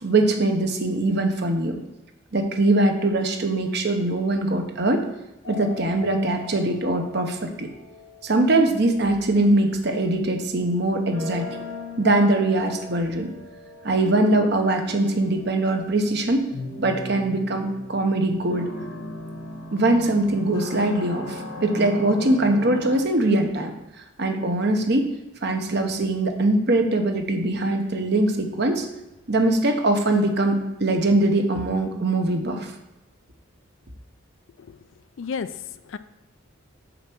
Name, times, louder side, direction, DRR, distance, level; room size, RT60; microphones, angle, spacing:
voice 1, 0.0-1.8 2.3-5.1 5.5-7.7 8.2-11.6 12.0-13.3 13.8-16.5 16.8-18.7 19.7-23.7 24.2-25.1 25.4-28.9 29.3-32.7, right 2 dB, 50° right, 5 dB, 0.9 m, -22 dB
sound 1, 5.4-9.2 11.1-23.0, left 3 dB, 90° left, 2.2 m, -38 dB
voice 2, 35.2-36.0, left 6 dB, 65° left, 13 dB, 0.4 m, -33 dB
6.6 x 4.6 x 6.1 m, 0.98 s
head